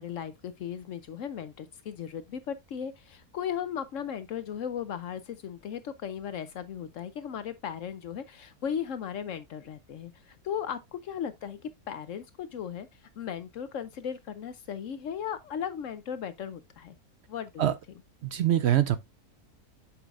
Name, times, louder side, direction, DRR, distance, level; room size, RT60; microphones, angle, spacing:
voice 1, 0.0-11.6 11.9-12.9 13.2-16.9 17.3-17.7, left 8 dB, 65° left, 0.9 m, -36 dB
voice 2, 18.2-19.0, right 11 dB, 75° right, 0.6 m, -24 dB
8.2 x 6.1 x 2.4 m
omnidirectional pair, 1.6 m